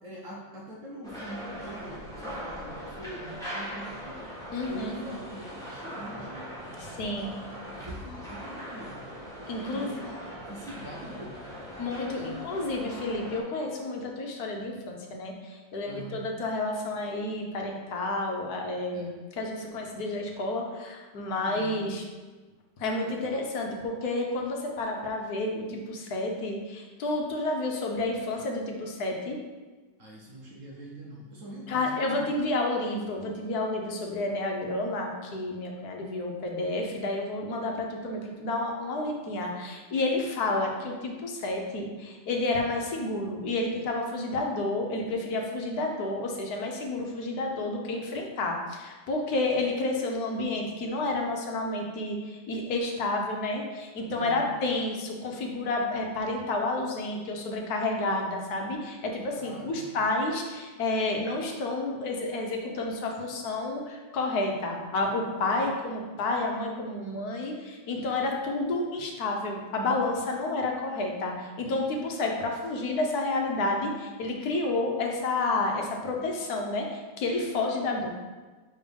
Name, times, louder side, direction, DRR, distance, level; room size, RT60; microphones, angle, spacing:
voice 1, 0.0-4.2 4.6-6.5 7.7-9.0 9.5-10.2 10.4-11.4 12.1-12.5 15.9-16.2 18.9-19.1 21.4-21.8 30.0-32.3 54.1-54.5 59.3-59.9, right 1 dB, 55° right, -3 dB, 1.2 m, -43 dB
sound 1, 1.0-13.4, equal, ahead, 1.2 m, -40 dB
voice 2, 4.5-5.0 7.0-7.4 9.5-9.9 11.8-22.0 22.8-29.4 31.7-78.1, left 2 dB, 65° left, 1 dB, 1.4 m, -30 dB
5.1 x 3.6 x 5.1 m, 1.3 s
omnidirectional pair, 1.9 m